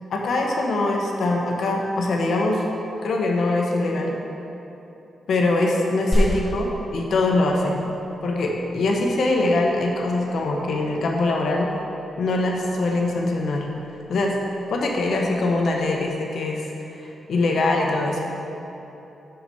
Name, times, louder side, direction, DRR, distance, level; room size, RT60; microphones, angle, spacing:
voice 1, 0.1-2.6 3.0-4.2 5.3-7.8 8.2-11.8 12.2-13.7 14.1-14.4 14.7-18.4, left 2 dB, 65° left, 0 dB, 1.0 m, -23 dB
sound 1, 6.1-16.1, equal, 5° right, 1.5 m, -32 dB
6.2 x 6.0 x 5.5 m, 3.0 s
wide cardioid pair, 125°, 0 cm